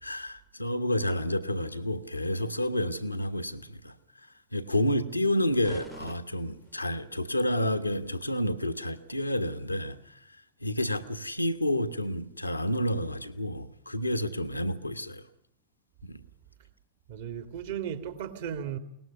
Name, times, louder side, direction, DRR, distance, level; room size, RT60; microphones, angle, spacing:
voice 1, 0.0-3.9 4.5-10.2 10.6-15.2 16.0-16.2, left 1 dB, 85° left, 1.4 m, -30 dB
sound 1, 5.6-7.1, equal, 5° right, 1.0 m, -48 dB
voice 2, 17.1-18.8, right 9 dB, 55° right, 2.4 m, -35 dB
23.0 x 19.5 x 6.9 m
figure-of-eight pair, 90°, 0 cm